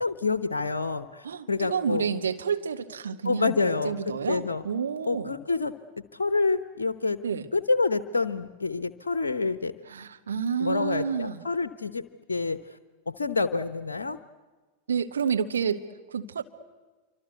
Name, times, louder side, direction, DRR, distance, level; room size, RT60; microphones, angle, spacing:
voice 1, 0.0-2.1 3.2-3.9 4.3-4.6 5.1-5.7 6.1-7.2 7.5-9.7 10.6-12.6 13.1-14.2, left 3 dB, 70° left, 12 dB, 0.8 m, -27 dB
voice 2, 1.2-3.6 3.8-5.4 7.2-7.5 9.8-11.4 14.9-16.4, right 7 dB, 70° right, 7 dB, 1.5 m, -29 dB
27.0 x 24.5 x 8.1 m, 1.3 s
figure-of-eight pair, 90°, 0 cm